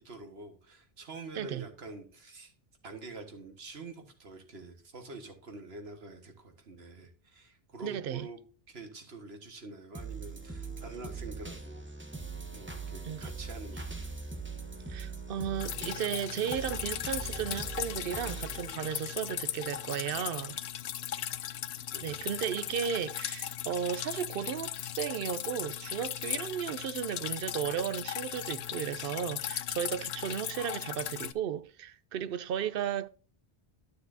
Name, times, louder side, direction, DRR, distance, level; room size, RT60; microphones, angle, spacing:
voice 1, 0.0-2.5 2.8-8.4 8.7-11.8 12.5-14.2 21.9-22.4, right 3 dB, 85° right, 1.7 m, -46 dB
voice 2, 1.3-1.7 7.8-8.3 13.0-13.2 14.9-20.6 22.0-33.1, right 9 dB, 70° right, 0.7 m, -34 dB
sound 1, 9.9-20.0 20.5-20.6, right 4 dB, 10° right, 1.0 m, -42 dB
Drip, 15.6-31.3, left 11 dB, 80° left, 0.8 m, -38 dB
12.0 x 6.6 x 2.7 m
omnidirectional pair, 1.0 m